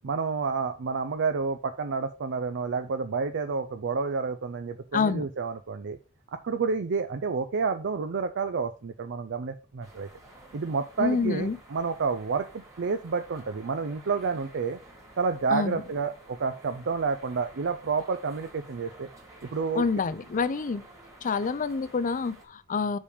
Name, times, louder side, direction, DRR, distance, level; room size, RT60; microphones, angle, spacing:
voice 1, 0.0-6.0 6.4-10.1 10.5-14.8 15.2-19.1 19.4-19.8, right 5 dB, 60° right, 0.5 m, -29 dB
voice 2, 4.9-5.3 11.0-11.6 15.5-15.8 19.7-20.8 21.2-23.0, left 4 dB, 40° left, 0.5 m, -27 dB
sound 1, 9.8-22.5, right 1 dB, 15° right, 2.0 m, -52 dB
5.3 x 5.0 x 4.8 m
head